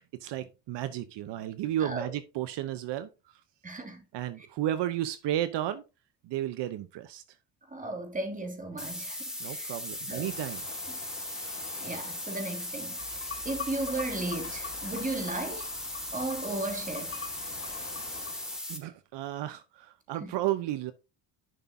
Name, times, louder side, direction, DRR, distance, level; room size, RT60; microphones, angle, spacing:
voice 1, 0.0-3.1 4.1-5.8 6.2-7.2 9.4-10.6 18.7-20.9, right 12 dB, 75° right, 0.9 m, -33 dB
voice 2, 1.8-2.1 3.6-4.0 4.4-4.5 7.7-9.7 10.1-10.3 10.9-11.0 11.8-15.7 16.1-17.2 20.2-20.3, right 2 dB, 20° right, 2.7 m, -36 dB
sound 1, 8.8-18.8, left 1 dB, ahead, 3.2 m, -38 dB
sound 2, 10.2-18.6, left 6 dB, 45° left, 2.9 m, -50 dB
sound 3, 13.0-18.3, left 5 dB, 30° left, 1.5 m, -44 dB
11.0 x 6.1 x 2.7 m
cardioid pair, 120°, 43 cm